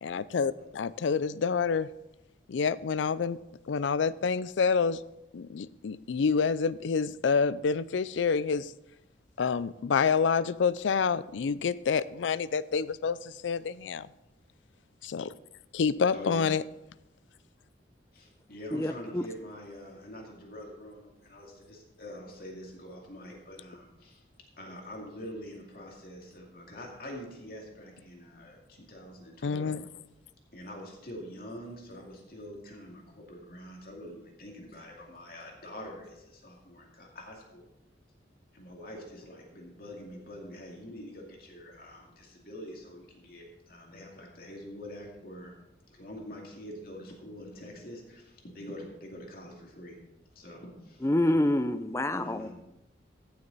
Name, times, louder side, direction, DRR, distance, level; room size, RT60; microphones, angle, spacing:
voice 1, 0.0-1.9 2.5-3.4 3.7-5.0 5.3-8.7 9.4-14.1 15.0-15.3 15.7-16.6 29.4-29.8, left 5 dB, 80° left, 0.4 m, -28 dB
voice 2, 16.1-16.6 18.1-24.2 24.6-29.8 30.5-37.7 38.5-45.5 45.9-50.0 50.4-51.1 52.1-52.5, equal, 50° left, 2.4 m, -45 dB
voice 3, 18.7-19.2 51.0-52.5, left 1 dB, 15° left, 0.4 m, -27 dB
15.5 x 6.9 x 4.1 m
head